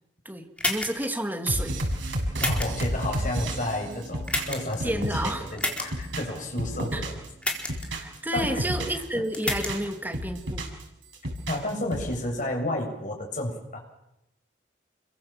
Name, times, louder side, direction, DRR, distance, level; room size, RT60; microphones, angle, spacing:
voice 1, 0.2-1.8 4.8-5.4 6.9-7.0 7.9-10.7, right 1 dB, 10° right, 4 dB, 2.7 m, -30 dB
sound 1, 0.6-1.1 2.4-2.9 4.3-4.8 5.6-5.9 7.4-7.9 9.3-9.7, left 1 dB, 5° left, 4.1 m, -29 dB
sound 2, 1.5-5.5 5.8-7.3 7.6-9.0 9.4-10.8 11.1-12.1, right 1 dB, 85° right, 6.7 m, -31 dB
voice 2, 2.4-7.2 8.3-9.0 11.5-13.8, left 1 dB, 45° left, 1 dB, 7.4 m, -31 dB
29.0 x 23.5 x 7.6 m, 0.87 s
head